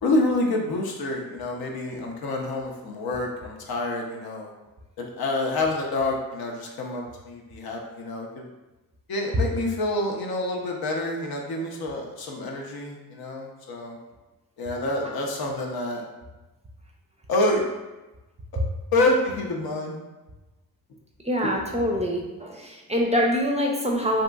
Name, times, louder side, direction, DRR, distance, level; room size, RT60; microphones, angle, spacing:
voice 1, 0.0-4.5 5.0-8.4 9.1-14.0 14.6-16.0 17.3-17.6 18.5-18.6 18.9-19.9, left 2 dB, 60° left, 0 dB, 0.6 m, -27 dB
voice 2, 21.2-24.2, equal, 15° right, 0 dB, 0.5 m, -25 dB
2.8 x 2.6 x 2.3 m, 1.1 s
supercardioid pair, 45°, 41 cm